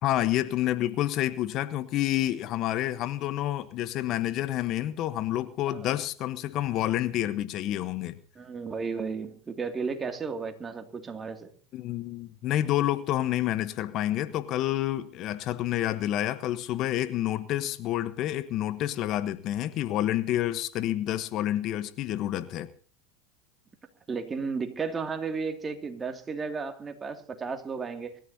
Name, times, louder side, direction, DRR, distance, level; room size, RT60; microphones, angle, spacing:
voice 1, 0.0-8.2 11.7-22.7, left 13 dB, 50° left, 1.1 m, -29 dB
voice 2, 8.4-11.5 24.1-28.2, right 5 dB, 25° right, 2.5 m, -34 dB
25.0 x 13.5 x 2.8 m
hypercardioid pair, 90°, 0 cm